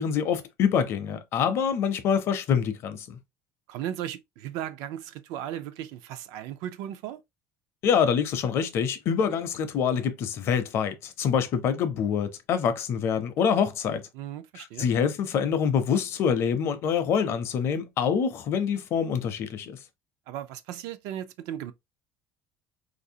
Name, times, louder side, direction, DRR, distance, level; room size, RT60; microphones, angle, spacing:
voice 1, 0.0-3.2 7.8-14.0 14.6-19.8, left 7 dB, 45° left, 0.5 m, -26 dB
voice 2, 3.7-7.2 14.1-14.9 20.3-21.7, right 11 dB, 85° right, 0.5 m, -36 dB
3.9 x 2.6 x 2.7 m
cardioid pair, 180°, 6 cm